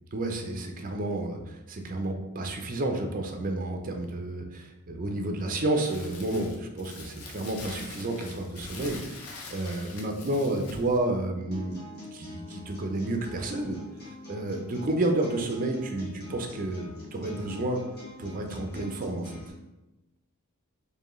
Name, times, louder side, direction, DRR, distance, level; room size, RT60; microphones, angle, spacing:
voice 1, 0.1-13.8 14.0-17.8 18.2-19.4, right 2 dB, 40° right, 4 dB, 0.5 m, -31 dB
Crumpling crinkling, 5.8-11.0, left 3 dB, 80° left, 0.7 m, -43 dB
sound 1, 11.5-19.5, left 2 dB, 45° left, 1.3 m, -45 dB
4.7 x 2.7 x 3.1 m, 0.98 s
head